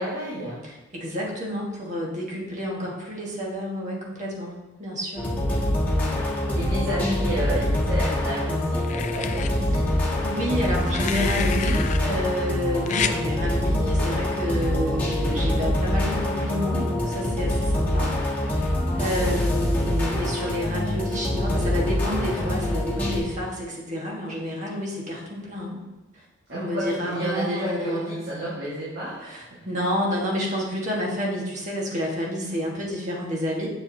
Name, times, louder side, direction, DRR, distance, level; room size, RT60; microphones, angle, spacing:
voice 1, 0.0-0.6 5.5-5.8 6.3-10.1 18.6-19.0 26.5-29.6, equal, 60° right, -9 dB, 1.7 m, -31 dB
voice 2, 0.6-5.3 9.9-10.0 10.2-18.1 18.5-25.8 26.1-26.2 26.5-28.2 29.2-33.7, equal, 40° right, -3 dB, 1.5 m, -29 dB
sound 1, 5.2-23.2, left 1 dB, 10° left, 1.4 m, -25 dB
sound 2, 7.6-8.3 8.8-9.5 10.6-12.0 12.9-13.2 14.5-14.7, left 8 dB, 40° left, 0.3 m, -30 dB
7.1 x 6.9 x 2.8 m, 1.0 s
head